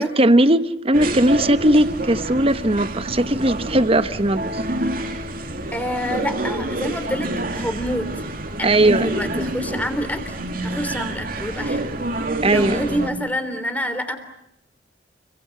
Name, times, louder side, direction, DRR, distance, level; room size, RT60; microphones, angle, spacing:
voice 1, 0.0-4.6 8.6-9.1 12.4-12.8, right 1 dB, 30° right, 12 dB, 1.1 m, -18 dB
sound 1, 0.9-13.1, right 1 dB, 50° right, 2.6 m, -27 dB
voice 2, 5.7-8.1 8.6-14.2, equal, 10° left, 8 dB, 3.3 m, -28 dB
29.5 x 23.5 x 8.4 m, 0.79 s
head